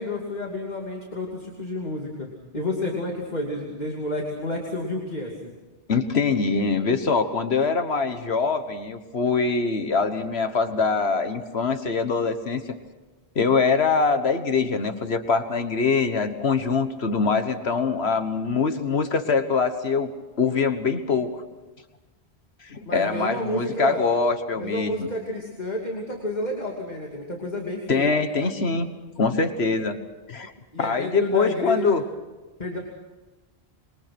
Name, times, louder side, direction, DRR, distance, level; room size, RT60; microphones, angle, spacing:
voice 1, 0.0-5.5 22.9-24.1 24.6-28.1 30.7-32.0 32.6-32.8, left 2 dB, 40° left, -1 dB, 2.9 m, -30 dB
voice 2, 5.9-12.6 13.3-20.1 20.4-21.4 22.6-25.1 27.9-28.9 29.2-30.0 30.3-30.5 30.8-32.0, left 4 dB, 75° left, 9 dB, 1.6 m, -23 dB
26.5 x 23.0 x 6.1 m, 1.2 s
omnidirectional pair, 1.1 m